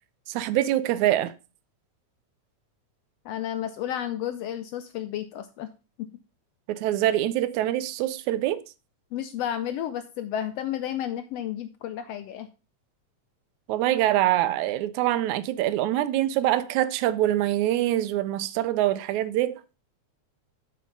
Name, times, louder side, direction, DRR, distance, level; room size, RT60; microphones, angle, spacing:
voice 1, 0.3-1.3 6.7-8.6 13.7-19.6, right 13 dB, 80° right, 2.0 m, -24 dB
voice 2, 3.2-5.7 6.0-6.1 9.1-12.5, left 10 dB, 80° left, 1.4 m, -32 dB
7.8 x 6.3 x 5.2 m
omnidirectional pair, 3.4 m